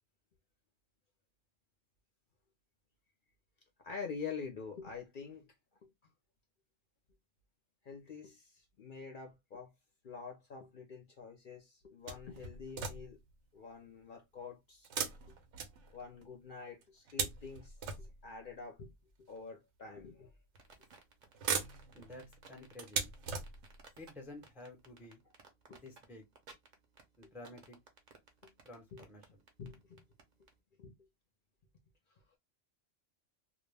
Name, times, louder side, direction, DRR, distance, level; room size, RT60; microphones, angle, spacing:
voice 1, 3.8-5.5 5.8-5.9 7.8-9.7 10.0-13.2 13.5-14.9 15.9-18.9 19.2-20.3 25.7-25.8 27.2-27.3 28.4-28.5 28.9-29.1 29.6-30.0 30.8-31.0, left 5 dB, 55° left, 0.7 m, -46 dB
sound 1, 12.1-13.3 14.8-16.3 16.8-18.5 19.4-19.5 20.6-21.0 21.3-23.9 24.6-24.7 25.0-25.1, right 6 dB, 85° right, 0.9 m, -40 dB
sound 2, 20.6-30.5, right 4 dB, 45° right, 0.6 m, -58 dB
voice 2, 21.9-23.1 24.0-25.2 25.7-26.3 27.2-27.8 28.6-29.2, left 2 dB, ahead, 0.5 m, -51 dB
2.3 x 2.1 x 3.1 m
omnidirectional pair, 1.2 m